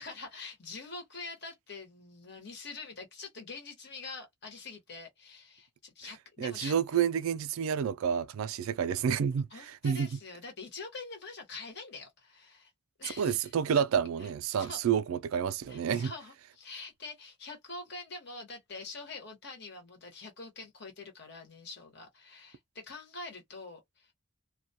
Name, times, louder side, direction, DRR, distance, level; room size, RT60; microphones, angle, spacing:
voice 1, 0.0-6.7 9.5-12.7 13.0-13.8 14.2-14.8 15.7-24.1, left 3 dB, 50° left, 1.1 m, -45 dB
voice 2, 6.4-10.1 13.2-16.1, right 7 dB, 75° right, 0.3 m, -29 dB
2.2 x 2.2 x 2.7 m
head